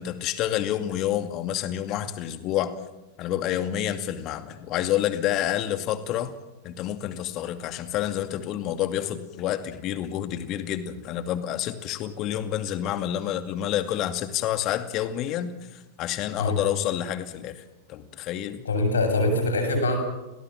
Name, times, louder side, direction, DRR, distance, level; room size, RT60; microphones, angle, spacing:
voice 1, 0.0-2.7 3.2-6.3 6.6-17.6 17.9-18.6, left 11 dB, 35° left, 9 dB, 2.4 m, -28 dB
voice 2, 18.6-20.0, left 2 dB, 70° left, 4 dB, 7.7 m, -23 dB
30.0 x 18.5 x 7.4 m, 1.0 s
figure-of-eight pair, 90°, 0 cm